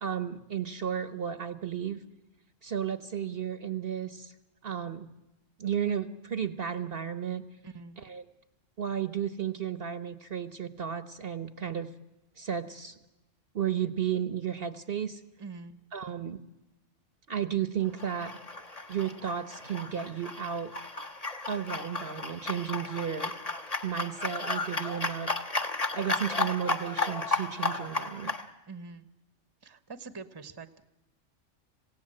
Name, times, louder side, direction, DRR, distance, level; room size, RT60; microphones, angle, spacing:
voice 1, 0.0-2.0 2.6-4.3 4.6-5.1 5.6-7.4 8.0-8.2 8.8-11.9 12.4-13.0 13.5-15.2 15.9-16.4 17.3-18.4 18.9-20.7 21.5-23.3 23.8-25.3 25.9-28.3, right 8 dB, 50° right, 12 dB, 1.1 m, -33 dB
voice 2, 7.6-8.0 15.4-15.8 28.7-29.1 29.6-30.8, right 4 dB, 20° right, 12 dB, 1.0 m, -44 dB
sound 1, 17.9-28.4, left 3 dB, 30° left, 1.5 m, -34 dB
27.0 x 17.0 x 7.7 m, 1.0 s
omnidirectional pair, 1.3 m